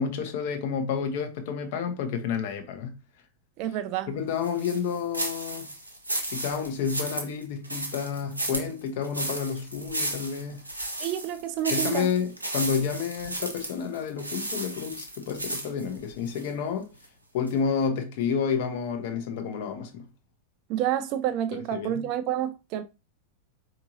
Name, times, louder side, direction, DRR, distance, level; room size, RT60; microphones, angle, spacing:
voice 1, 0.0-2.9 4.1-5.7 6.3-10.6 11.7-16.9 17.3-20.1 21.7-22.1, left 6 dB, 50° left, 0.7 m, -30 dB
voice 2, 3.6-4.1 11.0-12.1 20.7-22.8, right 11 dB, 40° right, 0.4 m, -29 dB
sound 1, 4.4-16.5 16.9-17.0 17.5-17.6, right 1 dB, 85° right, 0.8 m, -34 dB
4.5 x 2.8 x 2.7 m
figure-of-eight pair, 90°, 0 cm